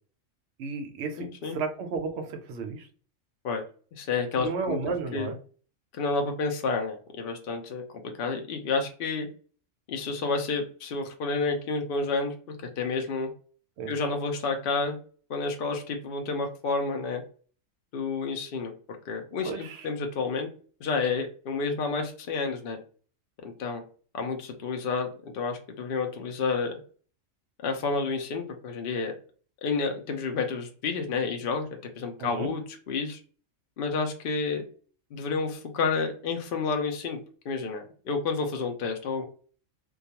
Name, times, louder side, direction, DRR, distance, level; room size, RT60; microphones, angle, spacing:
voice 1, 0.6-2.9 4.4-5.4 13.8-13.9 19.4-19.9 32.2-32.5, right 4 dB, 65° right, 5 dB, 0.8 m, -33 dB
voice 2, 1.2-1.6 3.4-3.6 4.0-4.8 5.1-5.3 6.0-7.8 8.2-9.3 9.9-13.3 13.9-15.0 15.3-17.2 17.9-18.7 19.1-20.5 20.8-22.8 23.4-23.8 24.1-26.8 27.6-29.1 29.6-31.7 32.0-32.6 32.9-33.2 33.8-34.6 35.1-37.2 37.4-39.2, left 4 dB, 65° left, 4 dB, 0.5 m, -30 dB
2.3 x 2.3 x 2.8 m, 0.41 s
omnidirectional pair, 1.4 m